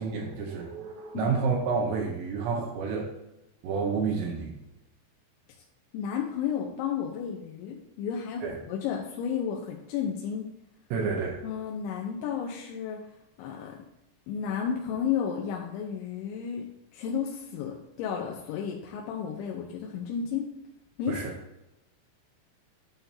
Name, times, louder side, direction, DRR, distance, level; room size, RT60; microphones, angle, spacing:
voice 1, 0.0-3.1 3.6-4.5 8.4-8.6 10.9-11.4 21.1-21.3, right 5 dB, 80° right, 0 dB, 3.1 m, -29 dB
voice 2, 5.9-10.5 11.4-13.0 13.4-13.8 14.3-16.7 16.9-20.5 21.0-21.2, left 7 dB, 90° left, -1 dB, 3.2 m, -32 dB
12.0 x 5.8 x 2.8 m, 0.92 s
omnidirectional pair, 5.2 m